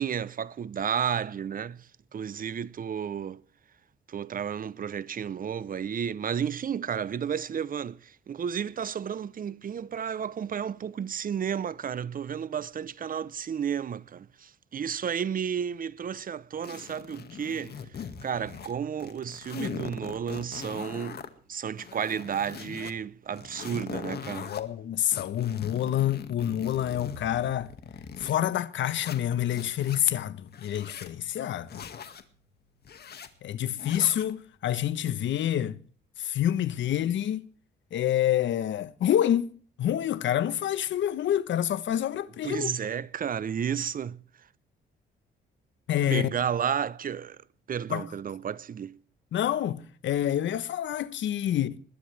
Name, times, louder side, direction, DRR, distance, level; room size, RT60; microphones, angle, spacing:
voice 1, 0.0-1.9 2.1-3.4 4.1-17.8 18.2-21.2 21.5-24.5 42.4-44.2 46.1-47.4 47.7-49.0, right 8 dB, 45° right, 0.8 m, -32 dB
sound 1, 16.6-18.7 19.0-21.3 21.7-22.9 23.3-24.6 25.1-28.4 28.8-30.0 30.5-31.1 31.7-32.2 32.8-33.3 33.8-34.3, left 7 dB, 55° left, 2.0 m, -41 dB
voice 2, 24.4-27.7 28.2-31.8 33.4-35.8 36.2-37.5 37.9-39.5 39.8-42.7 45.9-46.3 47.9-48.1 49.3-51.8, left 11 dB, 70° left, 1.1 m, -27 dB
21.0 x 16.0 x 3.4 m
cardioid pair, 90°, 20 cm